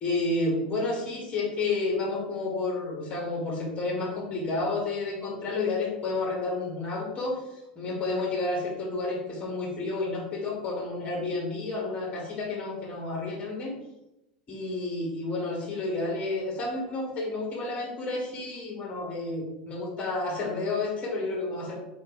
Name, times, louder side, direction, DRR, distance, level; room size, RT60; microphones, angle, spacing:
voice 1, 0.0-7.4 7.7-13.7 14.5-21.8, left 3 dB, 30° left, -2 dB, 1.1 m, -30 dB
3.9 x 3.2 x 2.9 m, 0.91 s
figure-of-eight pair, 85°, 5 cm